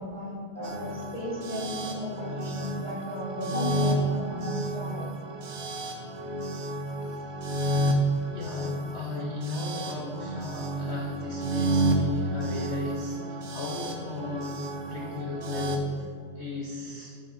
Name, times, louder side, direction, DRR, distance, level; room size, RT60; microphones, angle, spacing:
voice 1, 0.0-5.1, left 1 dB, 30° right, -4 dB, 1.1 m, -35 dB
sound 1, 0.6-15.8, right 1 dB, 70° right, 0.6 m, -31 dB
voice 2, 1.6-2.1 3.5-3.7 4.4-4.5 4.8-4.9 7.0-7.3 8.3-16.1 16.3-17.2, left 3 dB, 70° left, -1 dB, 0.6 m, -36 dB
8.5 x 5.1 x 5.1 m, 2.4 s
omnidirectional pair, 2.4 m